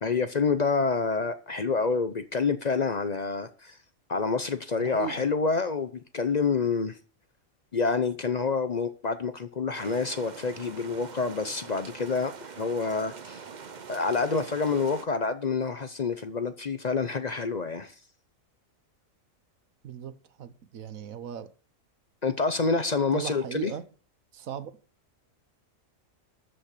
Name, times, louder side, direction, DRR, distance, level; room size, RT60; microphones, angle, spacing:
voice 1, 0.0-3.8 4.1-7.0 7.7-13.4 13.9-17.9 22.2-23.7, left 4 dB, 40° left, 0.6 m, -28 dB
voice 2, 4.7-5.2 19.8-21.5 23.1-23.9 24.3-24.7, right 9 dB, 80° right, 1.3 m, -37 dB
sound 1, 9.7-15.1, right 6 dB, 40° right, 0.8 m, -44 dB
13.0 x 5.5 x 6.7 m
omnidirectional pair, 1.4 m